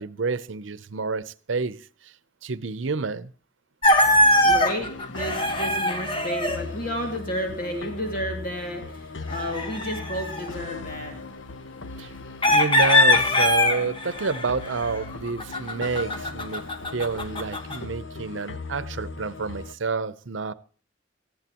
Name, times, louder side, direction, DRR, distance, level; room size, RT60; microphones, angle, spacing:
voice 1, 0.0-2.1 2.4-3.3 12.0-12.1 12.5-16.6 16.9-20.5, right 4 dB, 85° right, 0.7 m, -29 dB
sound 1, 3.8-6.6 9.3-10.5 12.4-17.8, left 1 dB, 30° left, 1.5 m, -22 dB
sound 2, 4.0-19.7, left 3 dB, 85° left, 1.0 m, -39 dB
voice 2, 4.4-11.2, equal, 50° left, 2.4 m, -32 dB
18.0 x 14.5 x 3.0 m
head